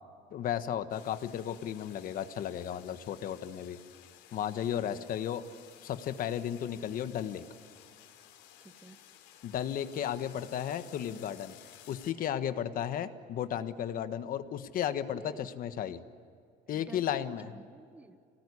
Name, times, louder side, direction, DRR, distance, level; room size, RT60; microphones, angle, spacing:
voice 1, 0.3-3.8 4.3-5.4 5.8-7.4 9.4-11.6 11.9-16.0 16.7-17.5, left 10 dB, 50° left, 10 dB, 1.4 m, -34 dB
sound 1, 0.9-12.1, left 11 dB, 85° left, 3.4 m, -56 dB
voice 2, 8.6-9.0 15.1-15.5 16.7-18.2, right 2 dB, 10° right, 9 dB, 1.3 m, -51 dB
27.5 x 19.0 x 9.9 m, 2.3 s
cardioid pair, 145°, 18 cm